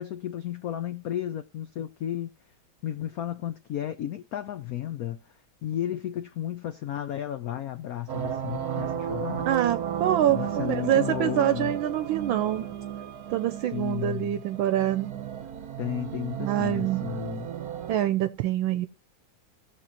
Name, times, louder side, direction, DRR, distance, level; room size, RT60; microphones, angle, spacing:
voice 1, 0.0-2.3 2.8-5.2 5.6-9.5 10.3-11.8 13.7-14.4 15.8-17.5, left 11 dB, 80° left, 0.8 m, -33 dB
sound 1, 8.1-18.0, right 9 dB, 55° right, 1.2 m, -34 dB
voice 2, 9.5-12.7 13.3-15.2 16.4-17.1 17.9-18.9, right 11 dB, 75° right, 1.4 m, -25 dB
17.5 x 6.5 x 2.9 m
omnidirectional pair, 2.3 m